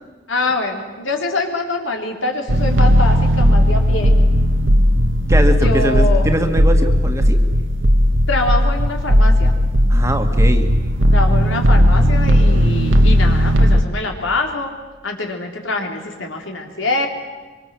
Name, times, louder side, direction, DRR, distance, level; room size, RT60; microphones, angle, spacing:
voice 1, 0.3-4.1 5.6-6.3 8.3-9.6 11.1-14.7 15.0-17.1, left 2 dB, 85° left, 2 dB, 3.8 m, -24 dB
sound 1, 2.5-13.8, equal, 80° right, 1.5 m, -15 dB
voice 2, 5.3-7.4 9.9-10.7, right 1 dB, 15° right, 5 dB, 1.8 m, -21 dB
24.5 x 24.5 x 7.7 m, 1.2 s
head